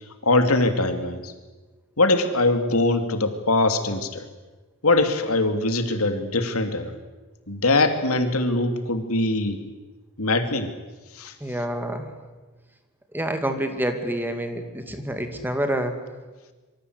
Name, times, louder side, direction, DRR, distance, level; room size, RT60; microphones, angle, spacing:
voice 1, 0.2-1.3 2.0-4.2 4.8-6.9 7.5-9.6 10.2-10.7 11.2-11.3, left 2 dB, 80° left, 7 dB, 2.8 m, -22 dB
voice 2, 11.4-12.1 13.1-15.9, right 1 dB, 10° right, 6 dB, 2.6 m, -27 dB
26.0 x 24.0 x 8.2 m, 1.3 s
head